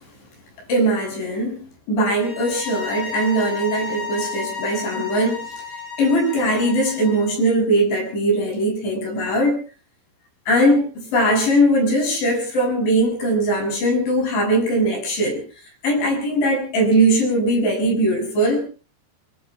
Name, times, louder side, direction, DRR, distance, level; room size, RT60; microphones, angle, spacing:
voice 1, 0.7-5.5 6.0-9.6 10.5-15.4 15.8-18.6, right 1 dB, 65° left, 2 dB, 9.5 m, -20 dB
sound 1, 2.2-7.3, left 5 dB, 90° left, 7.0 m, -32 dB
25.5 x 25.0 x 2.3 m, 0.37 s
omnidirectional pair, 5.8 m